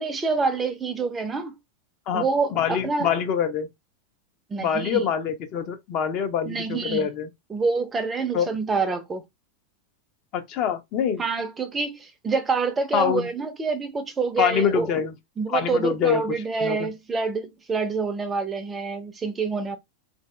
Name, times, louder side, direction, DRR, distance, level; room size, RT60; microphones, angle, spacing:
voice 1, 0.0-1.5 2.1-3.1 4.5-5.1 6.4-7.1 7.5-9.2 11.2-14.9 15.4-19.8, right 4 dB, 15° right, 0.5 m, -27 dB
voice 2, 2.1-3.7 4.6-7.3 8.3-8.5 10.3-11.2 12.9-13.3 14.4-15.1 15.5-16.2 16.6-16.9, left 7 dB, 40° left, 0.6 m, -25 dB
3.3 x 2.6 x 2.2 m
figure-of-eight pair, 90°, 0 cm